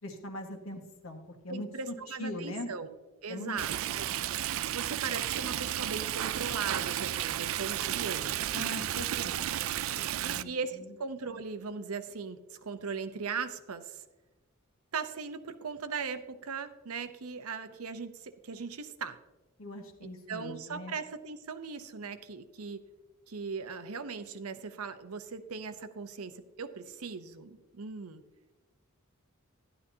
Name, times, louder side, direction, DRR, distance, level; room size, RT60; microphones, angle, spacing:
voice 1, 0.0-2.7 3.3-3.5 3.9-4.0 8.5-9.5 10.0-10.9 19.6-20.9, left 1 dB, 70° left, 3 dB, 1.5 m, -41 dB
voice 2, 1.5-2.9 3.2-4.1 4.7-8.7 9.2-9.3 10.2-14.0 14.9-19.2 20.3-22.8 23.3-28.2, right 5 dB, 90° right, 10 dB, 0.8 m, -39 dB
Stream, 3.6-10.4, right 12 dB, 70° right, 0.3 m, -33 dB
13.0 x 11.0 x 2.8 m, 1.1 s
head